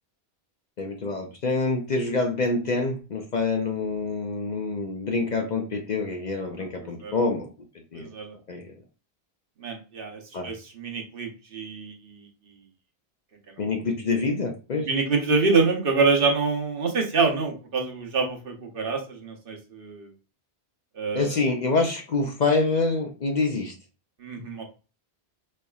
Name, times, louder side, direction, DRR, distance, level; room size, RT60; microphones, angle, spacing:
voice 1, 0.8-7.5 7.9-8.1 8.5-8.7 10.3-10.5 13.6-14.9 21.1-23.7, left 3 dB, 50° left, 3 dB, 0.6 m, -26 dB
voice 2, 6.8-7.1 7.9-8.3 9.6-12.3 13.6-13.7 14.8-20.1 21.0-21.4 24.2-24.6, right 4 dB, 60° right, 2 dB, 1.0 m, -26 dB
4.0 x 3.3 x 2.3 m, 0.33 s
omnidirectional pair, 1.1 m